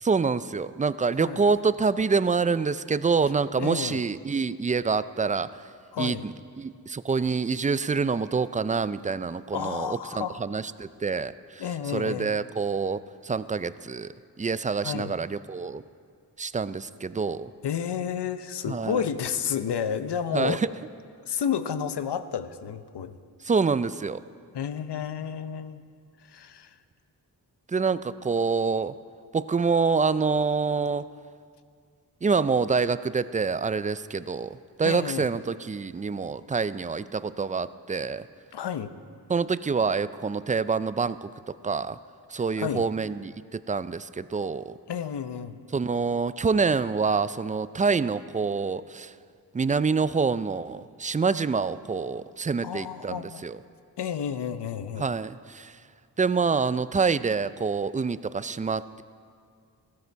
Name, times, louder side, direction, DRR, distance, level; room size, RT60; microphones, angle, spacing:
voice 1, 0.0-5.6 6.0-15.8 16.4-17.5 18.7-19.0 20.3-20.7 23.4-24.2 27.7-28.9 29.3-31.0 32.2-38.3 39.3-42.0 42.3-44.8 45.7-49.1 49.5-53.6 55.0-55.8 56.2-59.0, right 5 dB, 20° right, 15 dB, 0.3 m, -26 dB
voice 2, 3.6-4.0 5.9-6.3 9.5-10.4 11.6-12.3 14.8-15.1 17.6-20.6 21.2-23.2 24.5-25.8 26.3-26.7 34.8-35.3 38.5-38.9 42.6-42.8 44.9-45.6 52.6-53.4 54.0-55.1, left 8 dB, 75° left, 12 dB, 0.7 m, -31 dB
16.0 x 13.5 x 4.6 m, 2.2 s
wide cardioid pair, 70°, 41 cm